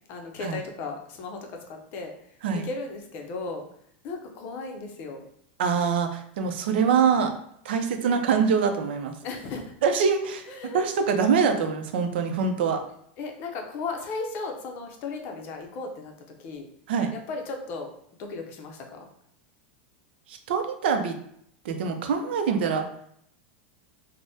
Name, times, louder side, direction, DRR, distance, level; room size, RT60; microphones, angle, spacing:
voice 1, 0.1-1.4 1.7-2.1 2.6-3.6 4.0-5.2 8.1-8.2 9.2-9.8 10.2-10.8 13.2-16.1 16.4-16.7 17.1-17.9 18.2-19.1, left 3 dB, 35° left, 2 dB, 0.5 m, -35 dB
voice 2, 5.6-7.3 7.6-9.2 9.8-12.8 16.9-17.1 20.3-21.2 21.6-22.9, right 6 dB, 75° right, 6 dB, 0.5 m, -24 dB
3.4 x 2.0 x 2.7 m, 0.69 s
supercardioid pair, 155°, 6 cm